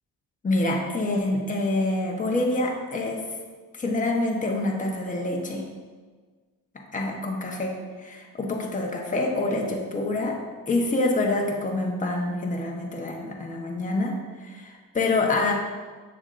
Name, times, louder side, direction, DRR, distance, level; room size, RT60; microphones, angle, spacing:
voice 1, 0.4-3.2 3.7-5.6 6.9-10.4 10.7-15.5, left 2 dB, 20° left, 0 dB, 1.1 m, -26 dB
8.0 x 7.1 x 2.6 m, 1.5 s
cardioid pair, 125°, 36 cm